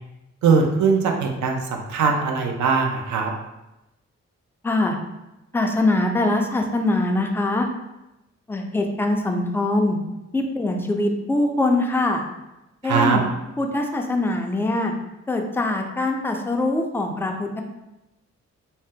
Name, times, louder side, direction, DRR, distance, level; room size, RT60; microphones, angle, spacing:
voice 1, 0.4-3.3 12.8-13.2, right 5 dB, 80° right, 2 dB, 0.5 m, -20 dB
voice 2, 4.6-5.0 5.5-7.7 8.5-10.0 10.3-12.2 12.8-13.2 13.6-14.9 15.3-17.6, left 2 dB, 10° left, 3 dB, 0.3 m, -23 dB
2.7 x 2.0 x 3.5 m, 0.96 s
cardioid pair, 90°, 29 cm